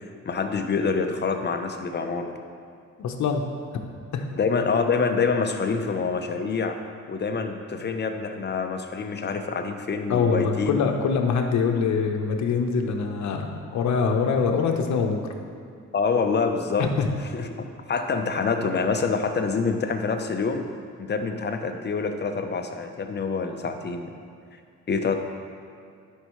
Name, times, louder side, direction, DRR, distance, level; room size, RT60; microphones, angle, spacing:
voice 1, 0.2-2.4 4.3-6.8 7.1-10.9 15.9-16.9 17.3-17.5 17.9-20.6 21.0-24.1 24.9-25.1, left 4 dB, 35° left, 5 dB, 0.8 m, -26 dB
voice 2, 3.0-3.5 4.1-4.2 10.1-15.2 16.8-17.1, left 5 dB, 70° left, 4 dB, 0.9 m, -24 dB
11.5 x 5.4 x 3.2 m, 2.4 s
cardioid pair, 90°, 30 cm